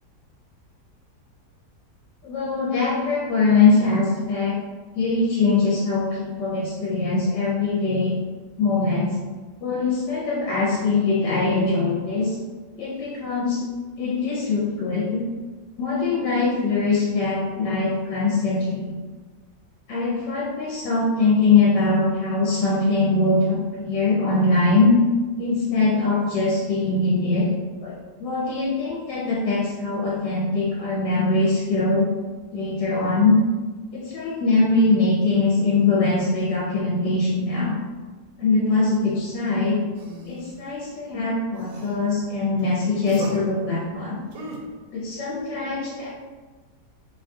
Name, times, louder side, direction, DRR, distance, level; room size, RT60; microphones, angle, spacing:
voice 1, 2.2-4.5 4.9-8.1 8.6-9.1 9.6-12.4 12.8-13.6 14.0-15.2 15.8-18.9 19.9-24.9 25.4-27.4 27.8-27.9 28.2-32.1 32.5-33.4 33.9-37.7 38.4-39.8 40.3-44.2 44.9-46.1, left 3 dB, 90° left, -6 dB, 1.3 m, -22 dB
sound 1, 39.9-40.6 41.5-41.9 42.6-42.7 43.0-43.4 44.3-44.6, right 2 dB, 80° right, 1.2 m, -37 dB
3.0 x 2.3 x 2.5 m, 1.3 s
omnidirectional pair, 1.9 m